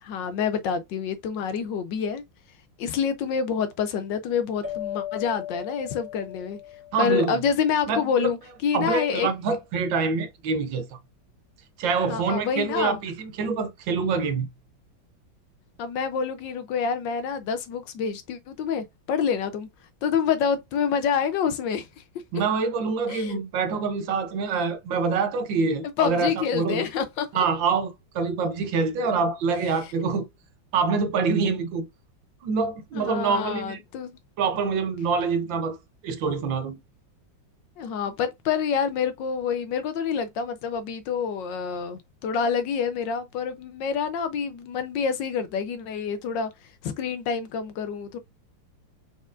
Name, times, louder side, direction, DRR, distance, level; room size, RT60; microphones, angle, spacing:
voice 1, 0.0-2.2 2.8-6.6 7.0-9.3 12.1-13.0 15.8-19.7 20.0-22.0 23.1-23.4 26.0-27.5 33.0-34.2 37.8-48.2, left 6 dB, 70° left, 1.2 m, -27 dB
sound 1, 4.6-7.6, left 11 dB, 40° right, 2.4 m, -37 dB
voice 2, 6.9-7.4 7.9-8.3 8.7-11.0 11.8-14.5 22.3-26.9 27.3-30.3 30.7-31.9 32.4-33.8 34.4-35.8 36.0-36.8, right 5 dB, 70° right, 1.5 m, -25 dB
5.0 x 4.3 x 2.4 m
omnidirectional pair, 2.2 m